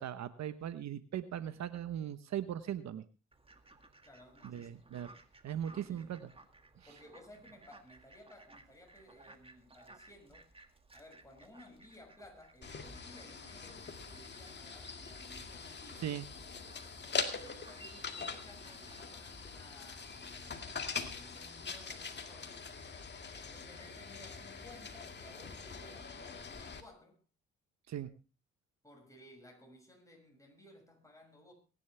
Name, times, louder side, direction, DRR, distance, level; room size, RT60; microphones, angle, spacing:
voice 1, 0.0-3.0 4.4-5.1 5.4-6.3 6.8-6.9 16.0-16.2 27.9-28.1, right 10 dB, 65° right, 1.0 m, -39 dB
Fowl, 3.3-19.0, right 2 dB, 20° right, 2.0 m, -60 dB
voice 2, 4.0-4.9 5.7-6.2 6.9-10.5 10.9-16.1 17.4-22.6 23.4-27.2 28.8-31.5, left 1 dB, 10° left, 6.3 m, -58 dB
sound 1, 12.6-26.8, left 5 dB, 35° left, 2.1 m, -43 dB
23.0 x 10.5 x 3.3 m
cardioid pair, 90°, 30 cm